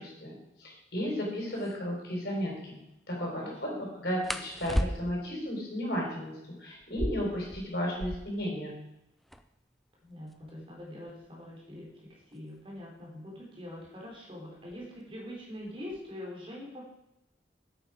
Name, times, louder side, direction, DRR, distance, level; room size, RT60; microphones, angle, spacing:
voice 1, 0.0-2.8 3.1-3.7 4.0-6.3 6.6-8.8, equal, 60° left, -2 dB, 4.5 m, -34 dB
sound 1, 1.1-1.2 1.6-1.8 4.2-5.4 6.8-8.5 8.8-8.9 9.1-9.6 10.3-12.8 13.8-14.1 14.6-15.0 15.4-16.1, equal, ahead, 0.5 m, -36 dB
voice 2, 3.3-3.9 10.0-16.8, left 1 dB, 30° right, -3 dB, 3.5 m, -44 dB
11.0 x 8.5 x 5.0 m, 0.85 s
head